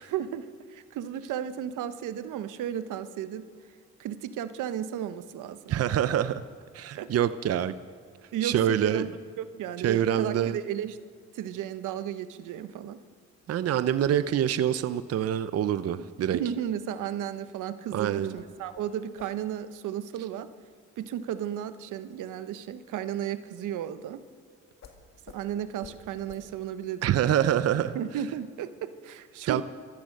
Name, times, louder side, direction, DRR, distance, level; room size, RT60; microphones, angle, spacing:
voice 1, 0.0-3.5 4.0-5.8 7.0-7.1 8.3-9.1 9.4-11.0 11.3-13.0 16.3-20.5 21.0-24.2 25.3-27.0 27.9-29.6, right 10 dB, 85° right, 12 dB, 0.9 m, -34 dB
voice 2, 5.7-6.4 6.7-7.8 8.4-9.1 9.8-10.6 13.5-16.4 17.9-18.3 27.0-28.0 29.5-29.6, right 10 dB, 55° right, 13 dB, 0.6 m, -25 dB
sound 1, 14.0-23.7 24.8-25.0 25.2-25.4 25.8-26.0 26.3-26.4, left 6 dB, 60° left, 2.1 m, -56 dB
15.5 x 14.0 x 6.6 m, 2.2 s
cardioid pair, 90°, 30 cm